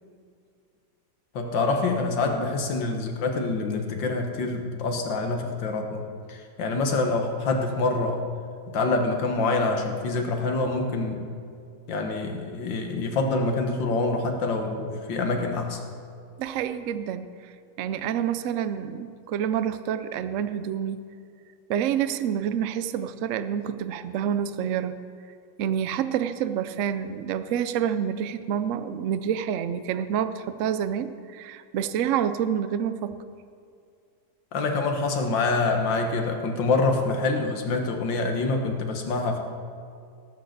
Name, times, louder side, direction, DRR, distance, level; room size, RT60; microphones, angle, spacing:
voice 1, 1.3-6.0 6.3-8.2 8.7-11.3 11.9-15.8 34.5-39.4, left 3 dB, 80° left, 4 dB, 2.0 m, -26 dB
voice 2, 16.4-17.5 17.8-21.0 21.7-25.0 25.6-33.2, right 9 dB, 85° right, 12 dB, 0.6 m, -28 dB
18.5 x 6.4 x 6.6 m, 2.3 s
omnidirectional pair, 2.0 m